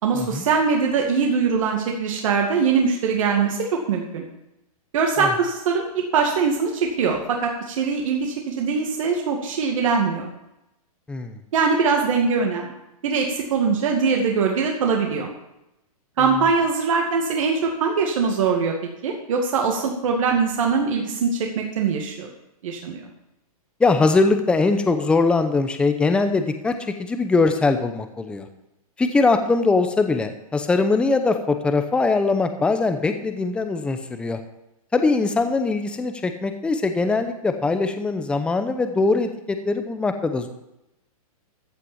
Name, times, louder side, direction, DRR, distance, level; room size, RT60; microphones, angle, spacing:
voice 1, 0.0-4.2 4.9-10.3 11.5-12.7 13.0-15.3 16.2-18.7 19.0-22.3 22.6-23.0, right 5 dB, 60° right, 0 dB, 2.2 m, -22 dB
voice 2, 11.1-11.4 23.8-28.5 29.0-34.4 34.9-40.5, left 3 dB, 5° left, 7 dB, 0.7 m, -21 dB
14.5 x 5.7 x 7.4 m, 0.87 s
hypercardioid pair, 150°, 19 cm